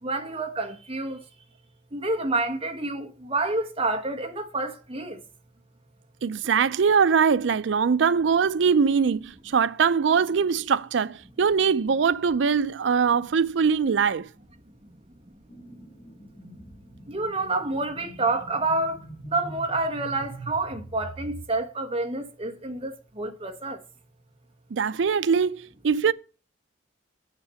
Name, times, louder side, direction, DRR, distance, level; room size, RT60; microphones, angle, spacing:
voice 1, 0.0-1.2 1.9-5.2 14.8-15.0 17.1-23.8, right 2 dB, 30° right, 1.2 m, -28 dB
voice 2, 6.2-14.3 24.7-26.1, right 6 dB, 70° right, 0.4 m, -22 dB
sound 1, 15.5-21.5, right 2 dB, 10° left, 3.2 m, -43 dB
7.5 x 5.9 x 6.8 m
head